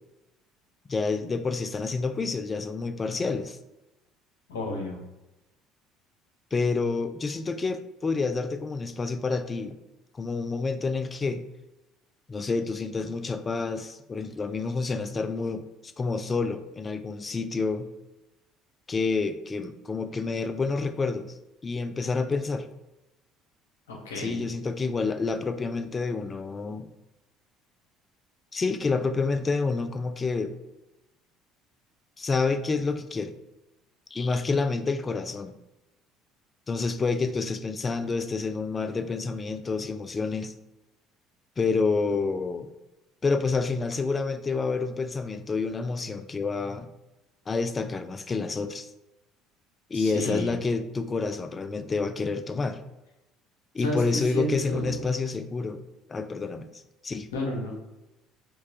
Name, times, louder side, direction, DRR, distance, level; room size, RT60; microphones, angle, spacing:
voice 1, 0.9-3.6 6.5-9.8 10.2-11.4 12.3-15.7 16.0-17.9 18.9-21.3 21.6-22.7 24.2-26.9 28.5-30.5 32.2-33.4 34.1-35.6 36.7-40.5 41.6-42.7 43.2-46.9 47.5-48.9 49.9-52.8 53.7-55.8 56.1-57.3, left 4 dB, 30° left, 10 dB, 0.3 m, -28 dB
voice 2, 4.5-5.0 23.9-24.4 49.9-50.5 53.8-55.1 57.3-57.8, left 1 dB, 90° left, 0 dB, 0.8 m, -32 dB
4.6 x 2.3 x 2.6 m, 0.98 s
hypercardioid pair, 70°, 0 cm